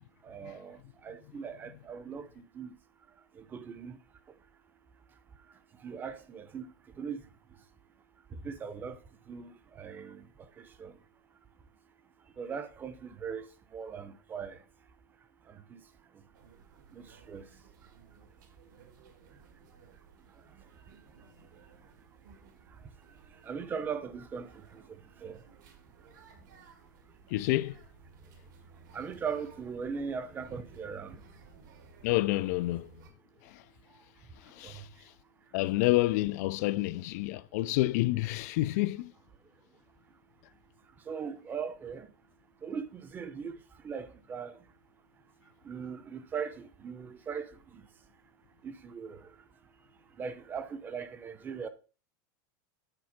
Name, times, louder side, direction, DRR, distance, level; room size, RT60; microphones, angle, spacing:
voice 1, 0.2-2.8 3.3-4.0 5.8-6.7 7.0-7.2 8.3-9.0 9.3-11.0 12.4-14.6 15.5-15.8 16.9-17.5 23.4-25.4 28.9-31.2 34.6-34.8 41.1-42.1 42.6-43.6 43.8-44.6 45.6-47.8 48.6-49.3 50.2-51.7, right 6 dB, 20° right, 0.7 m, -40 dB
sound 1, 16.3-33.1, right 5 dB, 80° right, 1.9 m, -58 dB
voice 2, 27.3-27.8 32.0-32.9 33.4-33.6 34.4-34.9 35.5-39.1, left 18 dB, 60° left, 0.4 m, -29 dB
8.9 x 4.1 x 5.8 m
supercardioid pair, 150°, 10 cm